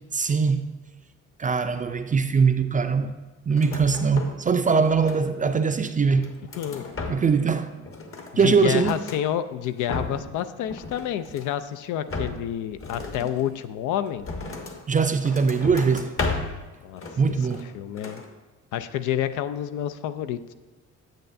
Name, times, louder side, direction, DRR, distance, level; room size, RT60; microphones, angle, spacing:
voice 1, 0.1-0.7 1.4-3.2 3.5-6.4 7.1-7.8 8.4-9.0 14.9-16.1 17.2-17.7, right 5 dB, 25° right, 0.4 m, -22 dB
sound 1, 3.5-4.5 4.8-5.5 6.0-7.5 7.8-9.2 9.7-10.4 10.7-11.6 12.1-14.8 15.2-16.6 17.0-17.7 18.0-18.3, left 3 dB, 45° left, 1.1 m, -35 dB
voice 2, 6.6-6.9 8.3-14.3 16.8-17.3 17.7-18.2 18.7-20.5, left 11 dB, 90° left, 0.5 m, -29 dB
9.0 x 7.5 x 2.6 m
cardioid pair, 90°, 30 cm